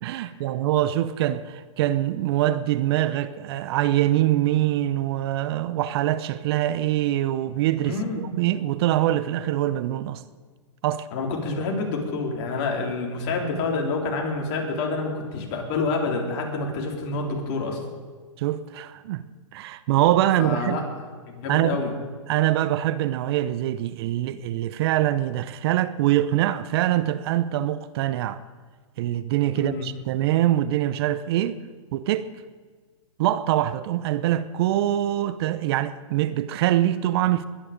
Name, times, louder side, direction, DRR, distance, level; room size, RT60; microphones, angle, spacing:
voice 1, 0.0-10.2 10.8-11.1 18.4-19.3 19.5-20.8 21.5-21.8 22.3-28.4 29.0-31.6 31.9-32.3 33.2-37.5, right 13 dB, 50° right, 0.7 m, -24 dB
voice 2, 7.8-8.3 11.1-17.8 20.4-20.8 21.3-21.9 29.5-29.8, left 3 dB, 45° left, 3.8 m, -28 dB
21.5 x 9.9 x 5.2 m
hypercardioid pair, 130°, 16 cm